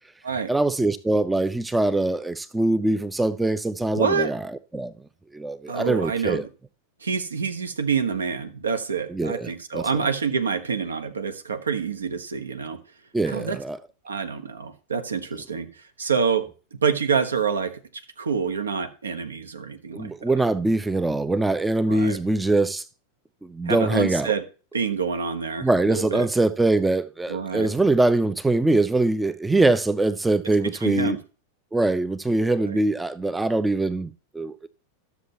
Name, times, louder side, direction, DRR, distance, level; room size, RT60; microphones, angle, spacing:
voice 1, 0.5-4.4 4.7-4.9 5.3-6.4 9.1-9.9 13.1-13.8 19.9-22.8 23.4-24.3 25.6-31.2 31.7-34.7, right 2 dB, 5° right, 0.4 m, -23 dB
voice 2, 3.9-4.3 5.7-6.4 7.0-12.8 13.2-13.6 14.0-20.3 21.9-22.2 23.6-24.4 24.7-26.3 27.3-27.7 30.6-31.2 32.6-32.8, right 6 dB, 70° right, 1.0 m, -27 dB
12.5 x 7.0 x 2.9 m
figure-of-eight pair, 90°, 0 cm